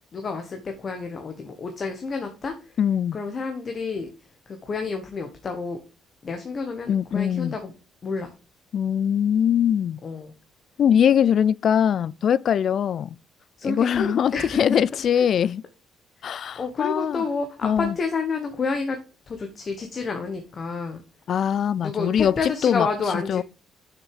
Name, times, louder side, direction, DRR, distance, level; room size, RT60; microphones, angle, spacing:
voice 1, 0.1-2.8 3.1-4.1 4.5-5.8 6.2-7.7 8.0-8.3 10.0-10.3 13.6-14.6 15.2-15.3 16.2-19.0 19.3-21.0 21.8-23.4, left 4 dB, 40° left, 1.3 m, -30 dB
voice 2, 2.8-3.2 6.9-7.5 8.7-10.0 10.8-13.2 13.6-15.6 16.2-17.2 17.6-17.9 21.3-22.9 23.3-23.4, left 8 dB, 55° left, 0.4 m, -22 dB
6.9 x 6.5 x 4.9 m
cardioid pair, 110°, 0 cm